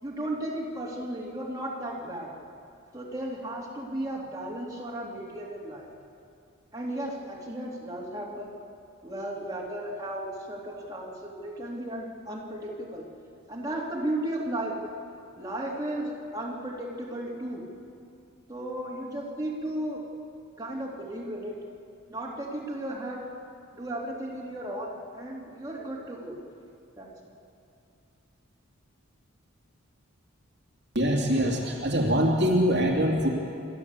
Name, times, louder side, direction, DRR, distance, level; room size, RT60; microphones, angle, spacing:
voice 1, 0.0-2.3 2.9-5.9 6.7-8.5 9.0-13.0 13.5-14.8 15.4-17.6 18.5-20.0 20.6-21.6 22.1-23.2 23.7-26.4 27.0-27.1, right 1 dB, 15° right, -4 dB, 3.1 m, -35 dB
voice 2, 30.9-33.3, equal, 50° right, -1 dB, 2.7 m, -23 dB
28.0 x 13.0 x 8.3 m, 2.4 s
head